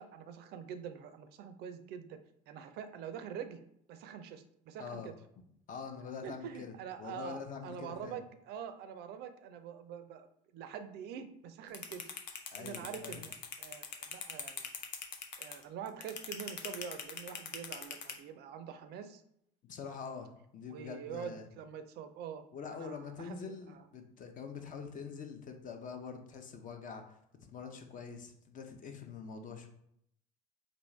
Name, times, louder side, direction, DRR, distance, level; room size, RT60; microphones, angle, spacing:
voice 1, 0.0-2.2 2.5-3.6 3.9-5.1 6.2-10.3 10.5-12.0 12.6-13.3 13.6-14.7 15.4-19.2 20.7-22.4 22.7-23.8, right 8 dB, 50° right, 9 dB, 0.5 m, -45 dB
voice 2, 4.8-5.1 5.7-8.2 12.5-13.2 19.6-21.5 22.5-29.7, left 6 dB, 40° left, 5 dB, 0.7 m, -45 dB
sound 1, 11.7-18.1, left 7 dB, 85° left, 0.5 m, -41 dB
4.5 x 2.6 x 3.1 m, 0.73 s
hypercardioid pair, 65°, 21 cm